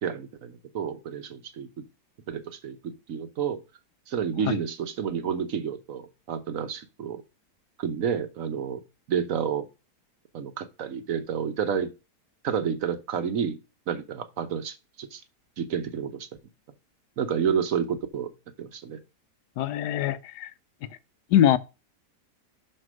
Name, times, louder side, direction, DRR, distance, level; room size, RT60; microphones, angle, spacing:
voice 1, 0.0-1.8 2.3-3.6 4.1-7.2 7.8-8.8 9.1-9.7 10.3-11.9 12.4-13.6 13.9-15.2 15.6-16.3 17.2-18.3 18.6-19.0, right 7 dB, 60° right, 1.2 m, -30 dB
voice 2, 19.6-20.5 21.3-21.6, left 11 dB, 75° left, 1.2 m, -22 dB
6.7 x 4.5 x 6.1 m
omnidirectional pair, 1.8 m